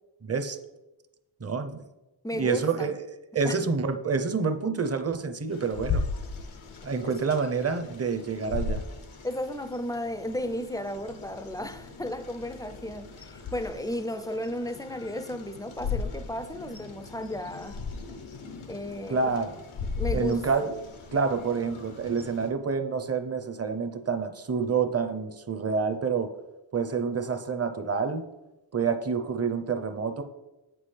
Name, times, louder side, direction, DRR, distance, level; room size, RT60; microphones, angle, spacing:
voice 1, 0.2-0.6 1.4-1.8 2.3-2.9 3.3-6.0 6.8-8.8 19.1-19.6 20.1-20.8 21.1-26.3 26.7-28.2 28.7-30.2, right 5 dB, 30° right, 0.6 m, -28 dB
voice 2, 2.2-2.9 3.4-3.6 9.2-17.8 18.7-19.3 20.0-20.7, left 1 dB, 10° left, 0.3 m, -34 dB
sound 1, 5.5-22.5, left 4 dB, 90° left, 0.8 m, -37 dB
8.0 x 6.1 x 3.2 m
wide cardioid pair, 55°, 47 cm